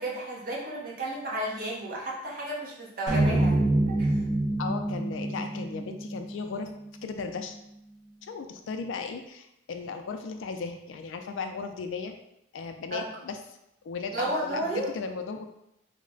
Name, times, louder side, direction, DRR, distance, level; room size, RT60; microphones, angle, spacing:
voice 1, 0.0-3.6 4.0-4.1 12.9-13.1 14.1-14.9, right 1 dB, 45° right, -4 dB, 0.8 m, -32 dB
sound 1, 3.1-7.4, right 1 dB, 70° right, 1.1 m, -27 dB
voice 2, 4.6-6.7 7.0-7.6 8.2-12.1 12.5-13.4 13.8-15.5, left 4 dB, 75° left, 6 dB, 0.3 m, -36 dB
3.1 x 2.1 x 3.7 m, 0.82 s
head